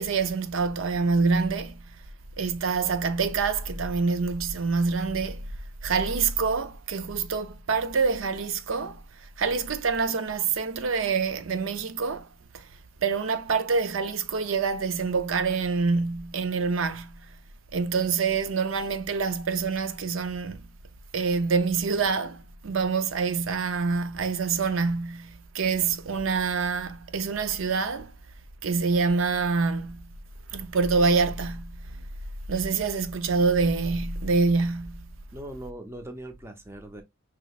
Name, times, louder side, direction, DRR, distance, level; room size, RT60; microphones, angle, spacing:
voice 1, 0.0-1.8 2.4-5.5 5.8-9.0 9.4-12.3 12.5-12.7 13.0-17.3 17.7-20.6 21.1-28.1 28.6-30.1 30.5-31.8 32.5-35.1, right 4 dB, 75° right, 0.5 m, -26 dB
voice 2, 35.3-37.0, right 1 dB, 10° right, 0.6 m, -40 dB
6.1 x 2.9 x 2.3 m
head